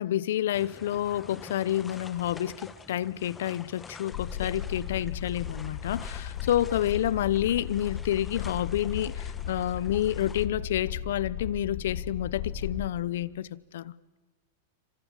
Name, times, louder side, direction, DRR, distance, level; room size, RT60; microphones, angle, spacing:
voice 1, 0.0-13.9, left 12 dB, 75° left, 0.8 m, -29 dB
sound 1, 0.5-10.5, left 4 dB, 15° left, 1.6 m, -47 dB
sound 2, 4.1-12.9, left 8 dB, 60° left, 2.4 m, -36 dB
28.0 x 25.5 x 7.4 m
hypercardioid pair, 120°, 0 cm